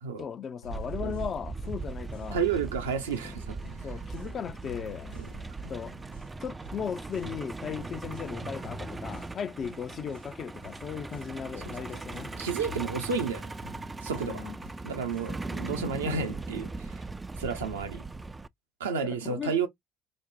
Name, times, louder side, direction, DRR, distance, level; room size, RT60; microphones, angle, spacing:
voice 1, 0.2-2.4 3.2-3.4 3.8-6.0 6.4-12.3 14.1-14.6 15.4-15.6 17.6-17.7 19.0-19.5, left 7 dB, 45° left, 0.5 m, -37 dB
sound 1, 0.6-16.6, left 5 dB, 85° left, 0.9 m, -51 dB
Truck, 0.7-18.5, right 3 dB, 20° right, 0.3 m, -39 dB
voice 2, 2.3-3.6 5.2-5.3 11.1-11.2 11.7-11.8 12.4-13.5 14.0-14.5 14.8-17.0 17.4-18.1 18.8-19.7, right 5 dB, 80° right, 0.7 m, -31 dB
5.1 x 2.1 x 2.6 m
figure-of-eight pair, 50°, 0 cm